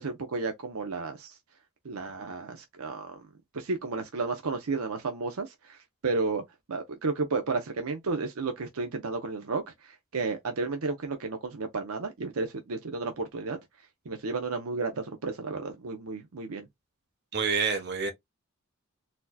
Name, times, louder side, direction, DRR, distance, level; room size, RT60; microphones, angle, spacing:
voice 1, 0.0-1.4 1.8-3.2 3.5-6.4 6.7-13.6 14.1-16.7, right 3 dB, 80° right, 0.7 m, -32 dB
voice 2, 17.3-18.1, right 5 dB, 50° right, 1.1 m, -27 dB
4.2 x 2.7 x 2.2 m
head